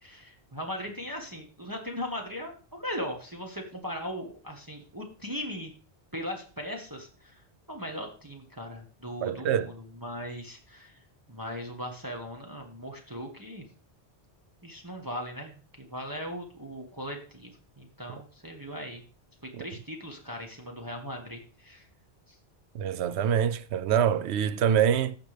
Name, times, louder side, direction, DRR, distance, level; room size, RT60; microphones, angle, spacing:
voice 1, 0.0-5.7 6.1-7.4 7.7-10.9 11.3-13.6 14.6-17.5 17.8-19.0 19.4-21.9 22.3-22.4, equal, 20° right, 1.4 m, -38 dB
voice 2, 9.2-9.7 19.6-19.7 22.7-25.2, right 9 dB, 80° right, 0.9 m, -25 dB
15.0 x 6.0 x 3.3 m
omnidirectional pair, 1.1 m